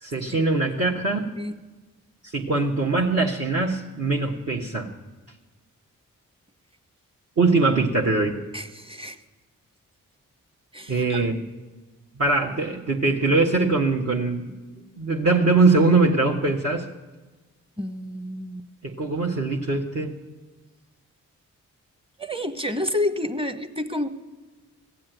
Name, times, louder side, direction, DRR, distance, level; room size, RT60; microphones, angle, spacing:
voice 1, 0.0-1.3 2.2-4.9 7.4-8.4 10.9-11.4 12.2-14.5 15.0-16.9 18.8-20.1, right 3 dB, 50° right, -1 dB, 1.4 m, -22 dB
voice 2, 8.5-9.2 10.7-11.3 17.8-18.6 22.2-24.1, left 1 dB, 15° right, 9 dB, 1.2 m, -29 dB
16.0 x 7.5 x 9.1 m, 1.3 s
supercardioid pair, 40°, 34 cm